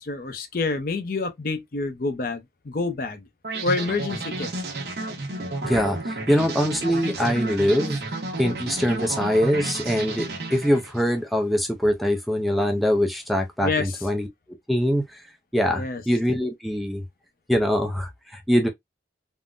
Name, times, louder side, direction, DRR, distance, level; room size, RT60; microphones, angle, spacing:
voice 1, 0.0-3.2 3.6-4.5 13.6-13.9 15.8-16.0, left 3 dB, 50° left, 0.5 m, -27 dB
sound 1, 3.4-11.1, right 2 dB, 65° right, 0.8 m, -31 dB
voice 2, 5.6-8.0 8.4-10.2 10.5-14.3 14.7-15.2 15.5-17.0 17.5-18.7, equal, ahead, 0.4 m, -23 dB
3.5 x 2.0 x 2.4 m
head